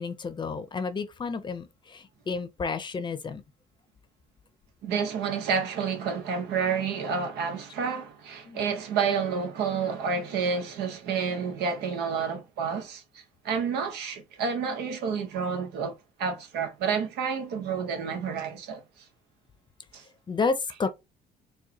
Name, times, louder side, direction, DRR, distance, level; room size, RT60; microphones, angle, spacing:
voice 1, 0.0-3.4 8.4-8.6 20.3-20.9, left 4 dB, 25° left, 0.6 m, -31 dB
voice 2, 4.8-13.0 13.4-18.8 19.9-20.0, right 6 dB, 80° right, 1.1 m, -29 dB
4.6 x 2.3 x 2.9 m
cardioid pair, 110°, 17 cm